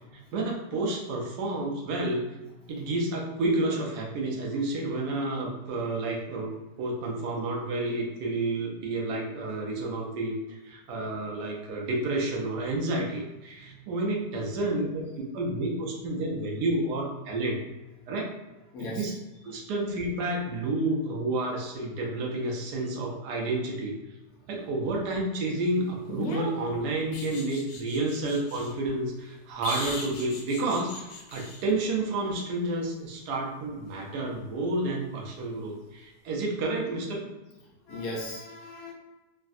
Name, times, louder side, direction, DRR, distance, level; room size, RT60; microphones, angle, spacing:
voice 1, 0.3-2.4 2.7-6.5 6.8-17.6 18.1-18.3 18.8-19.1 19.4-23.9 24.5-37.3, right 2 dB, 75° right, 0 dB, 1.1 m, -30 dB
voice 2, 18.7-19.1 19.6-19.7 37.9-38.9, left 1 dB, 65° left, -3 dB, 1.0 m, -38 dB
sound 1, 26.0-28.7 29.6-31.7 34.3-34.5, left 2 dB, 85° left, 1.3 m, -38 dB
3.2 x 2.4 x 2.5 m, 1.1 s
omnidirectional pair, 1.8 m